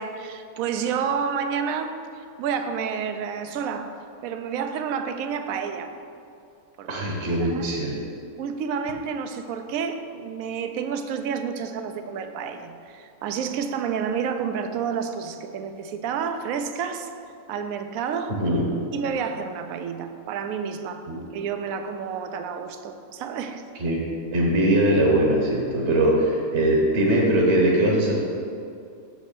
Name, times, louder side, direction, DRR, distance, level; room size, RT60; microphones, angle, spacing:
voice 1, 0.0-4.0 4.2-5.9 6.8-7.1 7.4-7.7 8.4-17.1 17.5-18.4 18.9-21.1 21.3-23.6, right 6 dB, 65° right, 8 dB, 0.9 m, -30 dB
voice 2, 6.9-7.9 18.4-18.7 21.1-21.2 23.8-24.0 24.3-28.1, right 1 dB, 45° right, -1 dB, 1.2 m, -21 dB
6.5 x 5.2 x 6.6 m, 2.5 s
omnidirectional pair, 1.8 m